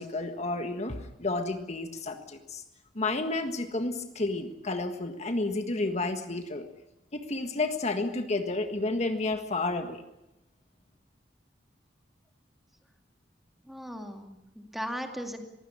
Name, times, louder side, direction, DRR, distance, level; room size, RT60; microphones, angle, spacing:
voice 1, 0.0-2.6 2.9-6.6 7.1-10.0, left 2 dB, 40° left, 6 dB, 1.6 m, -31 dB
voice 2, 13.7-15.4, equal, ahead, 4 dB, 2.3 m, -37 dB
22.5 x 16.5 x 9.9 m, 0.95 s
head